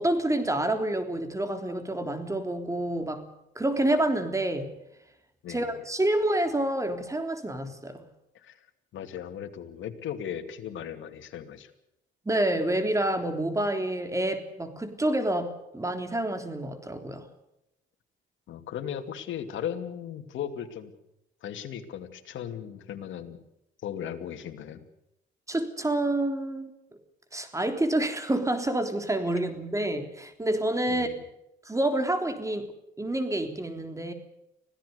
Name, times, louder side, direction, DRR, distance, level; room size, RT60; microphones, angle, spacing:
voice 1, 0.0-3.3 3.6-4.7 5.5-8.1 12.3-17.3 25.5-26.7 27.3-31.1 31.7-32.7 33.0-34.1, right 1 dB, 15° right, 7 dB, 3.5 m, -28 dB
voice 2, 5.4-5.7 8.3-8.6 8.9-11.7 18.5-20.9 21.4-23.4 23.8-24.8 30.9-31.1, left 9 dB, 75° left, 6 dB, 2.6 m, -37 dB
25.5 x 17.0 x 6.8 m, 0.84 s
cardioid pair, 90°, 20 cm